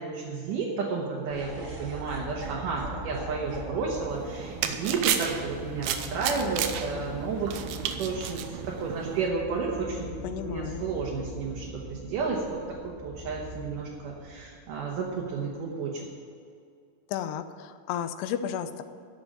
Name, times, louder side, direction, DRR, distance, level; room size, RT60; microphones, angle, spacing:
voice 1, 0.0-7.5 7.8-8.4 8.8-12.6 12.8-16.0, right 4 dB, 65° right, -3 dB, 2.5 m, -32 dB
sound 1, 1.3-15.5, equal, 65° left, 3.6 m, -42 dB
Laughter, 1.3-7.4, right 3 dB, 30° right, 2.0 m, -45 dB
sound 2, 4.1-9.3, right 9 dB, 80° right, 2.1 m, -33 dB
voice 2, 10.2-10.8 17.1-18.8, left 9 dB, 90° left, 10 dB, 2.8 m, -33 dB
11.5 x 7.1 x 8.9 m, 2.4 s
omnidirectional pair, 4.6 m